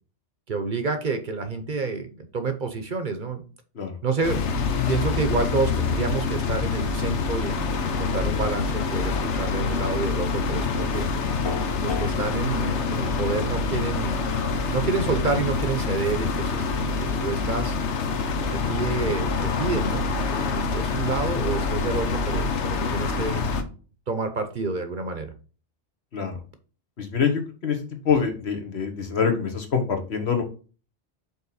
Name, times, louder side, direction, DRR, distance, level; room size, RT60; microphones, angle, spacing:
voice 1, 0.5-3.4 4.0-4.4 4.9-11.1 11.8-14.2 14.7-17.8 18.5-23.4 24.1-25.3, right 4 dB, 50° right, 8 dB, 0.9 m, -29 dB
sound 1, 4.2-23.6, left 4 dB, 80° left, 1.1 m, -26 dB
sound 2, 11.4-12.1, left 5 dB, 45° left, 0.3 m, -30 dB
voice 2, 27.0-27.8 28.0-30.4, left 6 dB, 65° left, 4 dB, 1.4 m, -25 dB
5.6 x 4.2 x 4.1 m, 0.37 s
omnidirectional pair, 1.2 m